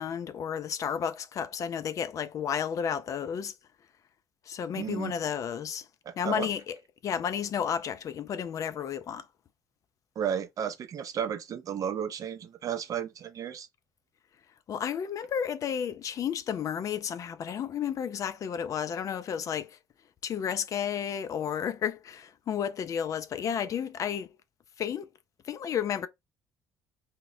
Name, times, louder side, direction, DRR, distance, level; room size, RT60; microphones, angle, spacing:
voice 1, 0.0-3.5 4.5-5.9 6.2-6.8 7.0-9.2 14.7-19.8 20.2-24.3 24.8-25.1 25.5-26.1, left 8 dB, 50° left, 0.4 m, -32 dB
voice 2, 4.7-5.1 6.1-6.5 10.2-13.7, right 8 dB, 50° right, 0.5 m, -33 dB
2.1 x 2.0 x 3.7 m
hypercardioid pair, 55°, 7 cm